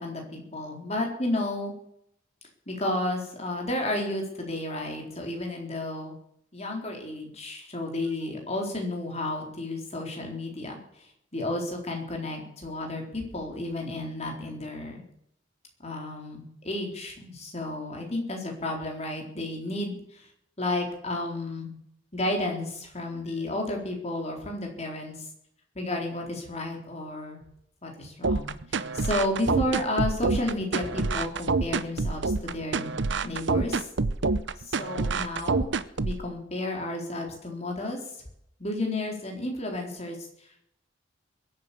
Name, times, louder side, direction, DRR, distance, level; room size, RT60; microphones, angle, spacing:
voice 1, 0.0-1.7 2.7-6.2 6.5-15.0 15.8-20.3 20.6-21.8 22.1-25.3 25.7-27.4 27.8-32.9 33.2-33.9 34.6-35.7 36.0-38.0 38.6-40.7, left 1 dB, 35° left, 2 dB, 4.2 m, -32 dB
sound 1, 28.2-36.2, right 3 dB, 65° right, 0.7 m, -27 dB
22.0 x 8.9 x 7.0 m, 0.72 s
head